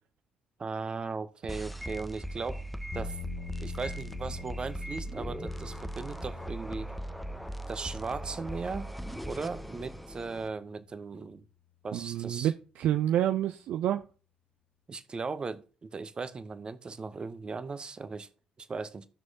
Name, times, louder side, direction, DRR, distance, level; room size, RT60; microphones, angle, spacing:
voice 1, 0.6-2.6 2.9-3.2 3.6-6.9 7.7-8.9 9.3-11.4 11.8-12.5 14.9-18.3 18.6-19.1, right 4 dB, 30° right, 0.8 m, -37 dB
sound 1, 1.5-10.5, right 1 dB, ahead, 0.7 m, -39 dB
sound 2, 2.9-11.0, left 10 dB, 45° left, 0.9 m, -47 dB
voice 2, 11.9-14.0, right 11 dB, 55° right, 0.4 m, -28 dB
15.5 x 6.2 x 2.8 m
figure-of-eight pair, 45°, 3 cm